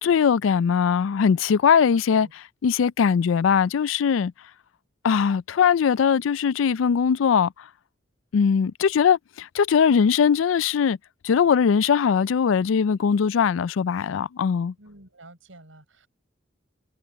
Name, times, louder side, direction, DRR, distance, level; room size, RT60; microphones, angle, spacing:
voice 1, 0.0-2.3 2.6-4.3 5.0-7.7 8.3-11.0 11.2-14.7, left 7 dB, 85° left, 0.4 m, -20 dB
voice 2, 1.9-2.3 14.8-16.1, right 2 dB, 90° right, 6.5 m, -49 dB
head